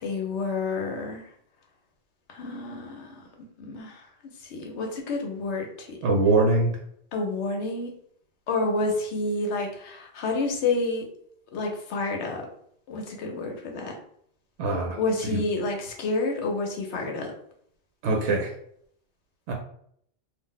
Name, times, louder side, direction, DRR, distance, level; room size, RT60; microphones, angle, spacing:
voice 1, 0.0-1.2 2.3-3.2 3.7-4.0 4.5-6.0 7.1-7.9 8.5-11.1 11.5-12.4 12.9-13.9 15.0-17.3, left 3 dB, 80° left, 2 dB, 1.0 m, -29 dB
voice 2, 6.0-6.7 14.6-15.0 15.3-15.4 18.0-18.5 19.5-19.6, right 3 dB, 85° right, 1 dB, 0.9 m, -22 dB
2.4 x 2.0 x 3.9 m, 0.66 s
omnidirectional pair, 1.1 m